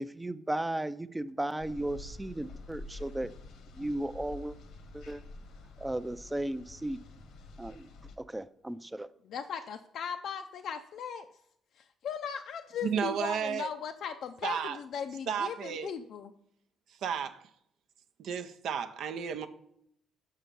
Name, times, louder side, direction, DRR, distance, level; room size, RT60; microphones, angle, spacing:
voice 1, 0.0-3.3 3.7-4.6 4.9-5.2 5.8-7.0 7.6-7.9 8.2-9.1, right 1 dB, 10° right, 0.4 m, -35 dB
sound 1, 1.6-8.2, left 2 dB, 85° left, 1.0 m, -48 dB
voice 2, 9.2-11.3 11.8-16.3, left 7 dB, 70° left, 0.4 m, -38 dB
voice 3, 12.8-13.7 14.4-14.8 15.3-15.9 17.0-17.5 18.2-19.5, right 7 dB, 75° right, 0.6 m, -33 dB
6.2 x 5.7 x 5.3 m
cardioid pair, 90°, 0 cm